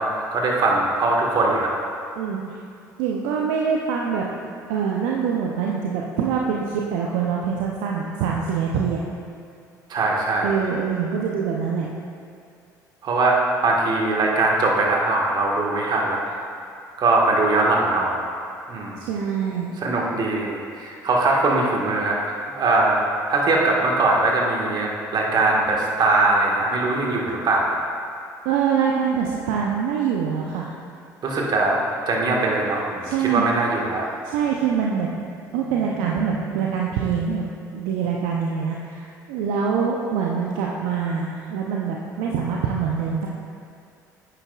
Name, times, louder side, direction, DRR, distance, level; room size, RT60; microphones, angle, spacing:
voice 1, 0.0-1.7 9.9-10.5 13.0-16.2 17.0-18.2 18.7-19.0 19.8-23.0 23.3-27.8 31.2-34.1, right 2 dB, 50° right, -2 dB, 1.6 m, -21 dB
voice 2, 3.0-4.3 4.7-9.0 10.4-11.9 19.0-19.7 28.4-30.7 33.0-33.5 34.2-35.2 35.5-43.3, right 6 dB, 70° right, -2 dB, 0.7 m, -24 dB
9.9 x 9.0 x 2.4 m, 2.4 s
hypercardioid pair, 60°, 10 cm